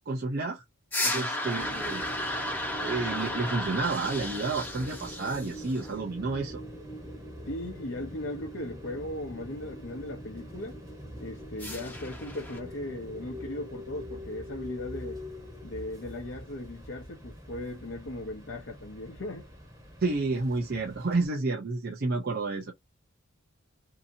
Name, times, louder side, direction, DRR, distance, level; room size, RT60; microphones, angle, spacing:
voice 1, 0.1-0.6 1.1-2.0 2.8-6.6 20.0-22.7, right 3 dB, 45° right, 0.5 m, -30 dB
sound 1, 0.9-5.9 11.6-12.6, left 1 dB, 10° left, 0.7 m, -34 dB
sound 2, 1.6-21.3, equal, 15° right, 0.9 m, -43 dB
voice 2, 7.5-10.8 11.2-15.2 15.6-19.5, left 1 dB, 60° left, 0.7 m, -38 dB
2.8 x 2.6 x 2.6 m
head